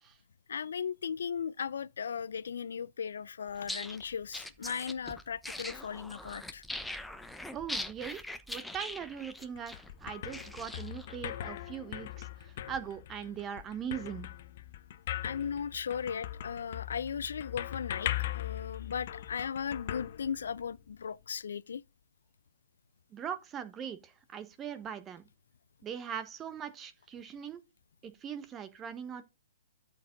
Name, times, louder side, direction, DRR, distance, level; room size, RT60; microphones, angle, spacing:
voice 1, 0.5-6.6 15.2-21.8, left 7 dB, 65° left, 0.5 m, -37 dB
sound 1, 3.6-11.2, left 1 dB, ahead, 0.9 m, -42 dB
voice 2, 7.5-8.2 8.5-9.7 10.0-14.3 23.1-25.2 25.8-27.6 28.0-29.2, right 8 dB, 20° right, 1.3 m, -40 dB
sound 2, 9.4-20.9, left 13 dB, 45° left, 0.9 m, -40 dB
13.0 x 4.9 x 3.9 m
figure-of-eight pair, 125°, 0 cm